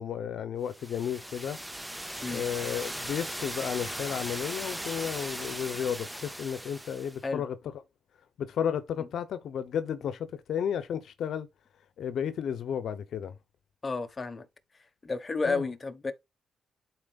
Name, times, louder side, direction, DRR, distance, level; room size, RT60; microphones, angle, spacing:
voice 1, 0.0-1.6 2.3-7.6 8.4-11.5 12.0-13.3 15.4-15.7, left 8 dB, 75° left, 0.8 m, -33 dB
sound 1, 0.7-7.2, right 1 dB, 5° right, 0.6 m, -38 dB
voice 2, 13.8-14.5 15.0-16.1, left 3 dB, 30° left, 1.3 m, -31 dB
11.5 x 4.5 x 2.4 m
cardioid pair, 105°, 0 cm